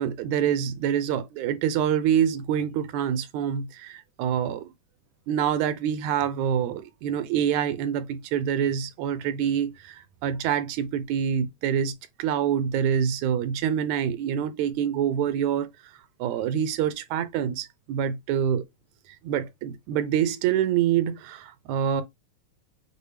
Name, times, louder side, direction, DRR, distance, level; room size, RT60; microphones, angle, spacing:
voice 1, 0.0-4.7 5.3-11.9 12.2-15.7 16.2-18.6 19.2-22.0, right 9 dB, 80° right, 1.9 m, -26 dB
6.7 x 2.3 x 3.2 m
omnidirectional pair, 3.5 m